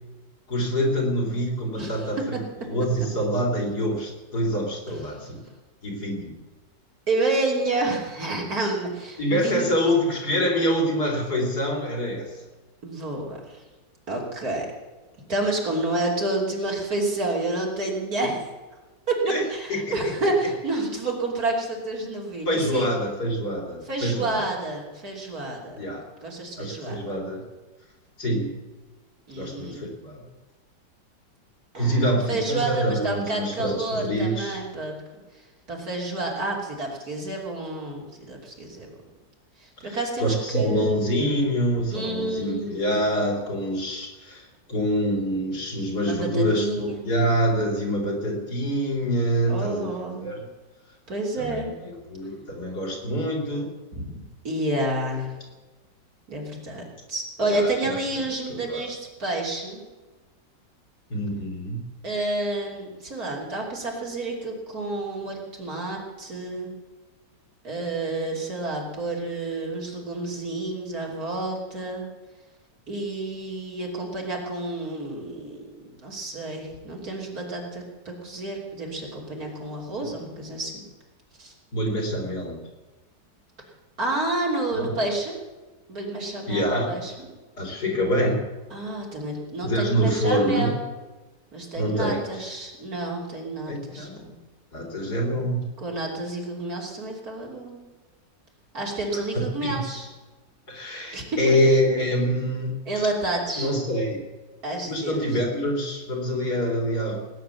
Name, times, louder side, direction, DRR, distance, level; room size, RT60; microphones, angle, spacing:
voice 1, 0.5-2.4 2.7-5.4 5.8-6.3 9.2-12.4 19.3-19.4 19.7-20.1 22.4-24.4 25.8-26.0 26.6-27.4 28.2-28.5 29.3-30.2 31.8-34.6 39.8-50.5 51.4-53.7 57.4-58.0 58.3-58.8 61.1-61.8 81.7-82.6 84.7-84.9 86.5-87.0 87.6-88.4 89.6-90.7 91.8-92.5 93.7-94.2 94.7-95.7 99.3-99.8 100.7-102.8 103.5-104.2 104.9-107.2, equal, 60° left, -1 dB, 4.3 m, -26 dB
voice 2, 1.8-2.1 2.3-2.4 5.1-5.2 7.1-9.7 12.8-13.6 14.1-14.7 15.3-18.5 19.1-22.9 23.9-25.8 26.2-27.0 29.3-29.9 31.7-34.9 35.7-38.9 39.6-40.9 41.9-42.9 46.0-47.0 49.5-50.2 51.1-51.7 53.9-54.1 54.4-55.3 56.3-56.8 57.1-59.8 62.0-66.7 67.6-72.0 72.9-80.8 81.4-81.5 84.0-85.4 85.9-87.3 88.7-90.8 91.5-94.3 95.8-97.8 98.7-100.1 101.1-101.6 102.9-103.7 104.6-105.4, right 2 dB, 50° right, -2 dB, 3.7 m, -29 dB
18.5 x 9.8 x 7.1 m, 1.2 s
omnidirectional pair, 2.0 m